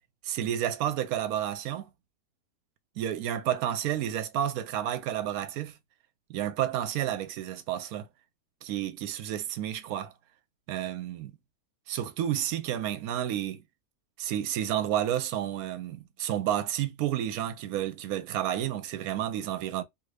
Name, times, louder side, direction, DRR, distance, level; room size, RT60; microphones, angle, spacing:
voice 1, 0.2-1.9 3.0-5.8 6.3-8.1 8.6-10.1 10.7-11.4 11.9-13.6 14.2-19.8, right 11 dB, 80° right, 1.0 m, -31 dB
2.7 x 2.6 x 3.2 m
omnidirectional pair, 1.5 m